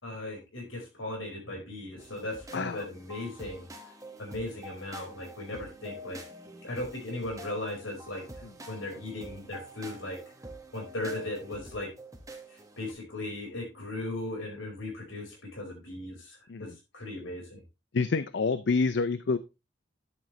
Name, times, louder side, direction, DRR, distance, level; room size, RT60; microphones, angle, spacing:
voice 1, 0.0-3.7 4.2-6.2 6.6-8.2 8.7-10.2 10.7-11.9 12.5-17.6, left 1 dB, 75° left, 1 dB, 4.7 m, -37 dB
sound 1, 2.0-12.9, right 1 dB, 15° right, 1.4 m, -47 dB
voice 2, 2.5-2.9 16.5-16.7 17.9-19.4, left 4 dB, 55° left, 13 dB, 0.5 m, -28 dB
10.5 x 7.5 x 3.2 m, 0.26 s
head